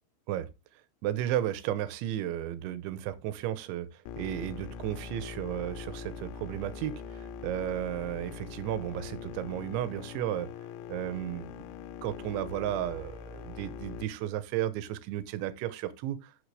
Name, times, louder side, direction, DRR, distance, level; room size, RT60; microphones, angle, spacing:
voice 1, 1.0-3.9 4.2-10.5 10.9-11.7 12.0-16.3, right 12 dB, 80° right, 3.0 m, -34 dB
sound 1, 4.1-14.0, left 7 dB, 85° left, 2.8 m, -43 dB
13.0 x 5.7 x 3.3 m
omnidirectional pair, 5.6 m